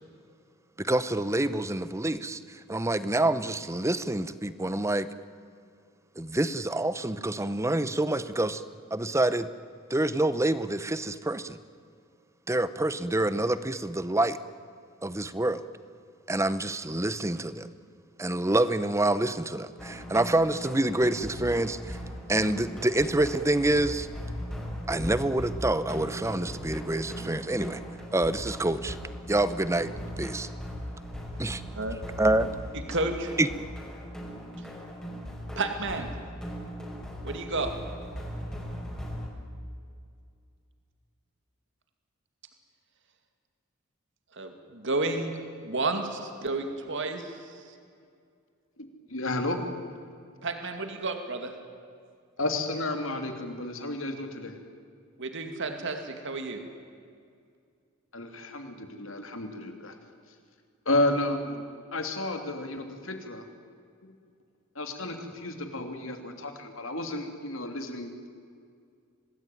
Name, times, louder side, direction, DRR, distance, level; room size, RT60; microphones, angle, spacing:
voice 1, 0.8-2.4 2.7-5.1 6.2-8.6 8.9-9.5 9.9-11.6 12.5-14.4 15.0-15.6 16.3-17.7 18.2-22.0 22.3-24.1 24.9-27.8 28.1-29.0 29.3-29.9 30.2-30.5 31.4-31.6 32.2-32.5 33.4-33.5, right 1 dB, 15° right, 14 dB, 0.8 m, -27 dB
sound 1, 19.8-39.3, equal, 5° left, 5.2 m, -39 dB
voice 2, 32.7-33.3 35.6-36.1 37.2-37.7 44.3-45.4 45.6-47.5 50.4-51.5 55.2-56.6, right 3 dB, 60° right, 6 dB, 2.4 m, -31 dB
voice 3, 49.1-49.6 52.4-54.5 58.1-60.0 60.8-61.6 61.9-63.4 64.7-68.3, left 2 dB, 65° left, 6 dB, 3.1 m, -32 dB
26.5 x 19.5 x 9.3 m, 2.3 s
head